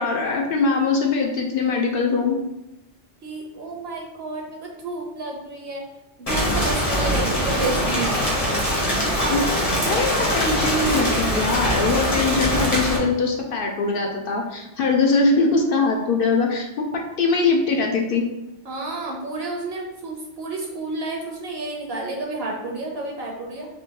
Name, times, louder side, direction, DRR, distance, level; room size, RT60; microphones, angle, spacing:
voice 1, 0.0-2.4 9.3-9.5 9.8-18.2, left 3 dB, 60° left, 1 dB, 0.6 m, -22 dB
voice 2, 3.2-5.8 6.2-8.1 18.6-23.7, right 2 dB, 65° right, -1 dB, 0.8 m, -30 dB
Rain, 6.3-13.0, equal, 35° left, 0.9 m, -22 dB
3.6 x 2.6 x 2.8 m, 0.91 s
omnidirectional pair, 1.2 m